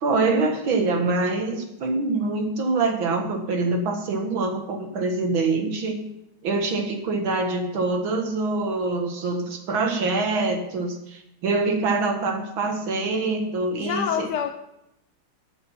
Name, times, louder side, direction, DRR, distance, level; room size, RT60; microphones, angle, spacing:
voice 1, 0.0-6.1 6.4-14.3, right 3 dB, 70° right, 4 dB, 2.3 m, -25 dB
voice 2, 13.8-14.5, left 8 dB, 65° left, 6 dB, 1.1 m, -26 dB
13.5 x 6.9 x 5.7 m, 0.84 s
omnidirectional pair, 2.3 m